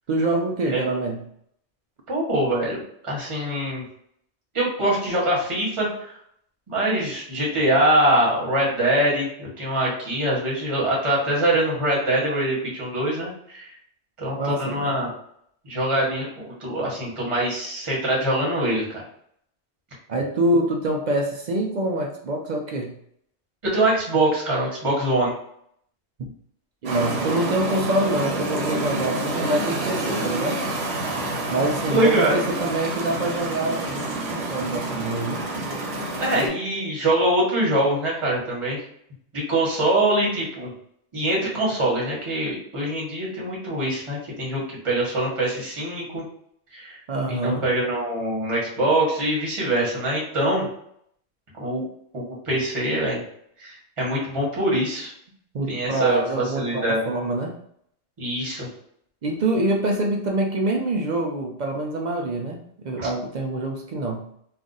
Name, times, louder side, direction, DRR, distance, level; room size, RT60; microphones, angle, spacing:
voice 1, 0.1-1.2 14.4-14.9 20.1-23.0 26.2-26.3 26.8-30.6 31.5-35.4 47.1-47.7 55.5-57.6 59.2-64.3, right 2 dB, 60° right, 1 dB, 0.5 m, -25 dB
voice 2, 2.1-3.8 4.5-5.9 6.7-13.7 14.2-15.1 15.6-19.0 23.6-25.3 31.9-32.4 36.2-38.8 39.3-40.7 41.1-46.2 46.7-47.0 47.3-50.7 51.6-51.8 52.1-53.2 53.6-55.1 55.7-57.1 58.2-58.7 63.0-63.1, right 1 dB, 30° right, -5 dB, 1.1 m, -23 dB
sound 1, 26.9-36.5, right 2 dB, 90° right, 1.1 m, -28 dB
2.5 x 2.4 x 3.8 m, 0.69 s
omnidirectional pair, 1.2 m